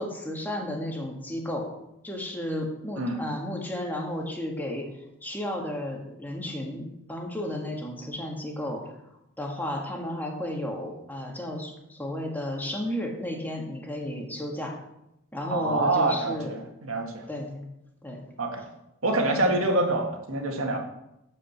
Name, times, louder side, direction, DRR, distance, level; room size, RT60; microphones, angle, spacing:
voice 1, 0.0-1.7 2.0-9.0 9.4-14.8 15.3-16.6 17.3-17.7 18.0-18.2 19.4-19.6, left 1 dB, 10° left, 0 dB, 1.7 m, -33 dB
voice 2, 15.5-17.3 18.4-18.6 19.0-20.8, right 2 dB, 75° right, 2 dB, 1.9 m, -26 dB
11.0 x 5.0 x 7.2 m, 0.85 s
head